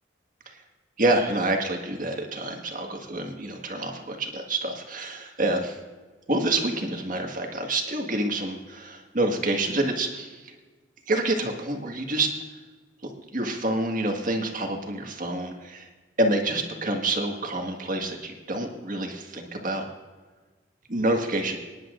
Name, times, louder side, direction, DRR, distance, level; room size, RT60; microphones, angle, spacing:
voice 1, 1.0-5.8 6.3-10.4 11.1-12.3 13.3-15.9 16.2-19.8 20.9-21.6, right 2 dB, 45° right, 3 dB, 1.7 m, -27 dB
25.5 x 10.5 x 2.6 m, 1.3 s
head